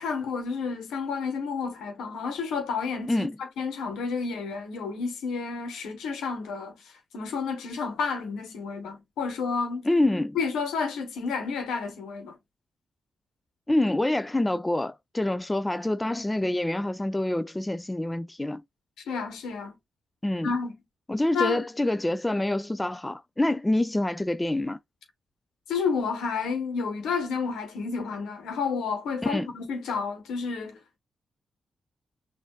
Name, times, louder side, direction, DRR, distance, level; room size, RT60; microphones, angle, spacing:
voice 1, 0.0-3.3 3.6-9.8 10.3-12.4 19.1-19.8 20.4-20.7 21.3-21.6 25.7-31.0, left 5 dB, 80° left, 1.1 m, -30 dB
voice 2, 9.9-10.4 13.7-18.6 20.2-20.5 21.1-24.8 29.2-29.5, left 1 dB, 20° left, 0.4 m, -26 dB
6.2 x 2.6 x 2.2 m
hypercardioid pair, 40°, 0 cm